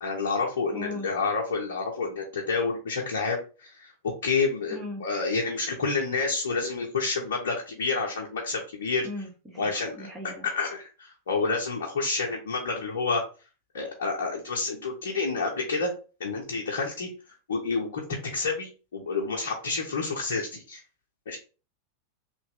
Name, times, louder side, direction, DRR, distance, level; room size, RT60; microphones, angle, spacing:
voice 1, 0.0-9.1 9.6-10.1 10.4-13.2 13.7-15.9 16.2-17.1 17.5-20.8 21.3-21.4, left 4 dB, 60° left, -1 dB, 0.7 m, -29 dB
voice 2, 0.7-1.1 4.7-5.0 9.0-10.5, left 2 dB, 15° right, -3 dB, 0.8 m, -38 dB
3.3 x 2.5 x 3.4 m, 0.34 s
figure-of-eight pair, 90°, 0 cm